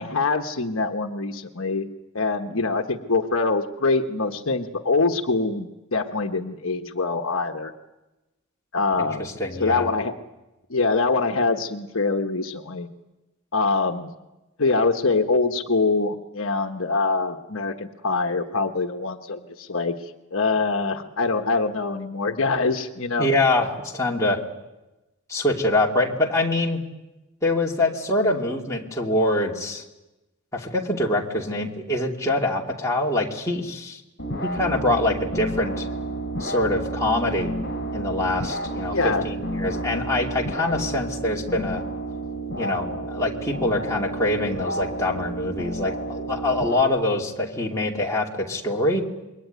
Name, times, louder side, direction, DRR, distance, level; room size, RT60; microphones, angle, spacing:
voice 1, 0.0-1.9 2.1-7.7 8.7-9.3 9.6-10.1 10.7-12.9 13.5-14.1 14.6-19.9 20.3-23.3 38.9-39.2, left 3 dB, 65° left, 5 dB, 1.3 m, -24 dB
voice 2, 9.0-9.9 23.2-24.4 25.3-26.8 27.4-29.8 30.5-34.0 34.4-35.9 36.4-37.5 37.9-41.8 42.6-49.0, left 2 dB, 15° left, -2 dB, 2.7 m, -24 dB
sound 1, 34.2-46.8, right 2 dB, 50° left, 3.1 m, -31 dB
27.0 x 22.5 x 9.4 m, 1.0 s
head